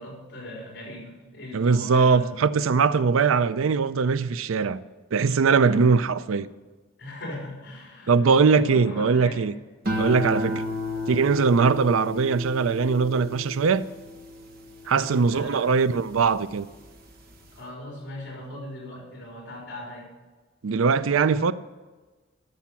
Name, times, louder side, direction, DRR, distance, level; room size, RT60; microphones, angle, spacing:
voice 1, 0.0-2.4 5.5-5.8 7.0-9.5 10.4-10.7 14.8-15.7 17.5-20.1, left 1 dB, 55° left, 4.2 m, -39 dB
voice 2, 1.5-4.8 5.1-6.5 8.1-9.5 10.0-10.6 11.1-13.9 14.9-16.7 20.6-21.5, right 5 dB, 80° right, 0.5 m, -21 dB
sound 1, 9.8-16.4 16.8-17.3, left 2 dB, 50° right, 1.5 m, -33 dB
12.0 x 7.2 x 7.2 m
head